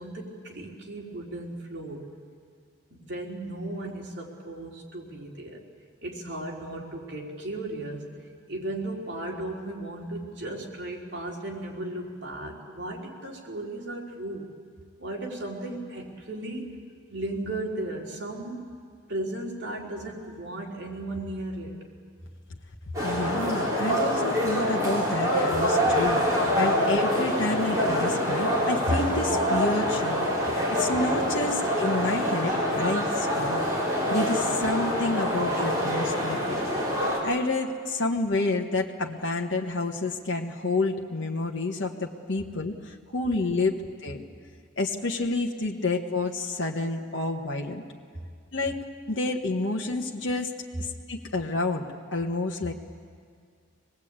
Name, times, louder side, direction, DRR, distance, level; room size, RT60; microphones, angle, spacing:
voice 1, 0.0-2.0 2.9-5.6 6.0-8.0 8.5-14.5 15.0-16.7 17.1-18.7 19.1-21.7, right 1 dB, 60° right, -2 dB, 3.7 m, -35 dB
sound 1, 22.9-37.2, equal, 15° right, 4.9 m, -25 dB
voice 2, 23.0-33.6 34.1-36.7 37.2-43.7 44.0-44.2 44.8-47.8 48.5-48.8 49.1-50.5 50.8-51.8 52.1-52.7, left 2 dB, 70° left, 0 dB, 1.3 m, -29 dB
24.0 x 20.0 x 8.9 m, 2.1 s
head